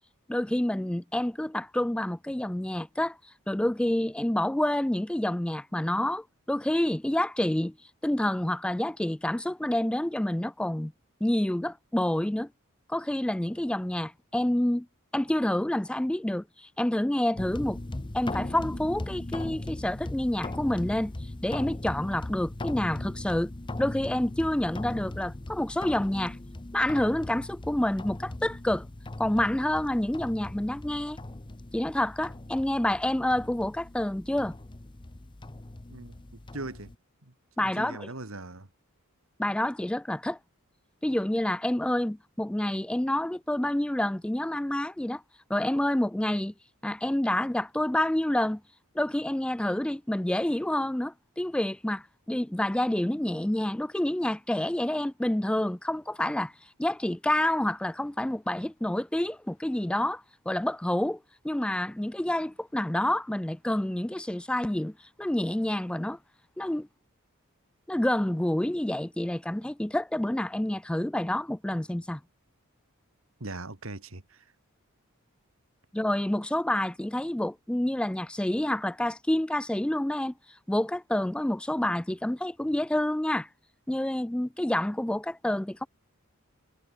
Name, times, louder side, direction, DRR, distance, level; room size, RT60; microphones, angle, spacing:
voice 1, 0.3-3.2 3.5-7.7 8.0-10.9 11.2-12.5 12.9-14.9 15.1-17.8 18.1-21.1 21.4-23.5 23.8-26.4 26.7-28.9 29.2-31.2 31.7-34.5 37.6-38.1 39.4-40.4 41.0-45.2 45.5-46.5 46.8-48.6 49.0-56.5 56.8-61.2 61.4-66.2 66.6-66.9 67.9-72.2 75.9-80.3 80.7-83.5 83.9-85.9, left 1 dB, 5° left, 0.3 m, -28 dB
sound 1, 17.3-36.9, left 1 dB, 20° left, 0.7 m, -39 dB
voice 2, 36.5-36.9 37.2-37.3 37.6-38.7 73.4-74.4, right 2 dB, 70° right, 2.3 m, -40 dB
head